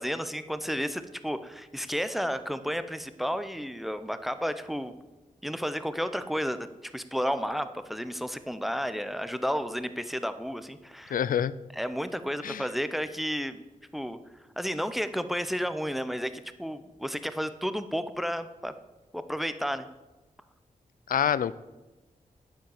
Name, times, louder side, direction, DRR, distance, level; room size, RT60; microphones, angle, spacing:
voice 1, 0.0-4.9 5.4-11.2 11.7-13.7 13.9-14.2 14.6-16.3 16.6-18.7 19.1-19.9, equal, ahead, 11 dB, 0.7 m, -32 dB
voice 2, 11.1-11.5 12.4-12.7 21.1-21.6, left 9 dB, 85° left, 17 dB, 0.4 m, -26 dB
9.4 x 9.0 x 7.1 m, 1.1 s
wide cardioid pair, 105°, 14 cm